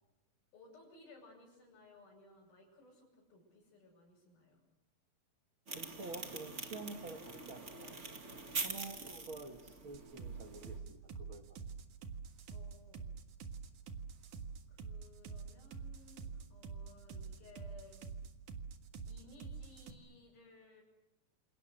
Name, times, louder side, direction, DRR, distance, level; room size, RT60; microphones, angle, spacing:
voice 1, 0.5-4.6 8.2-8.6 12.5-13.1 14.7-18.0 19.1-20.8, left 2 dB, 90° left, -5 dB, 8.7 m, -60 dB
sound 1, 5.7-10.8, right 3 dB, 25° right, 1.8 m, -44 dB
voice 2, 5.7-8.0 8.5-11.4, right 3 dB, 45° right, 4 dB, 2.1 m, -48 dB
sound 2, 9.9-19.9, right 5 dB, 65° right, 3.0 m, -46 dB
29.0 x 28.5 x 6.6 m, 0.95 s
omnidirectional pair, 4.1 m